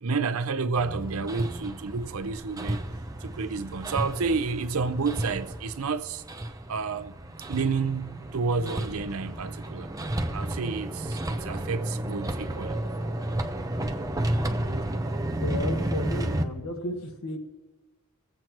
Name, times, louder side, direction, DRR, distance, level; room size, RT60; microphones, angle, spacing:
voice 1, 0.0-2.8 3.2-6.2 6.7-7.1 7.5-9.9 10.3-12.8, right 4 dB, 75° right, 0.6 m, -30 dB
Hammer, 0.8-16.4, right 1 dB, 15° right, 0.6 m, -32 dB
voice 2, 15.3-17.4, left 1 dB, 80° left, 1.4 m, -33 dB
23.5 x 7.9 x 3.0 m
head